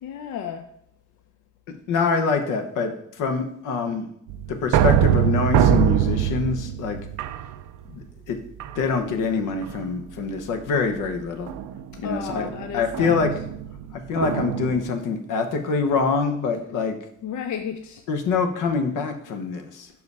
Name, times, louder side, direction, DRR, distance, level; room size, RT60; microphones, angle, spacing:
voice 1, 0.0-0.7 11.9-13.3 17.2-18.0, left 8 dB, 70° left, 7 dB, 0.5 m, -33 dB
voice 2, 1.9-2.9 3.2-4.1 4.5-7.0 7.9-8.4 8.7-11.5 12.0-12.5 12.7-13.3 13.9-17.0 18.1-19.9, left 4 dB, 90° left, 6 dB, 1.0 m, -25 dB
sound 1, 4.3-8.0 8.6-9.2 9.6-10.0 11.5-14.8, right 10 dB, 80° right, 0.5 m, -23 dB
5.5 x 4.8 x 4.7 m, 0.70 s
cardioid pair, 90°, 30 cm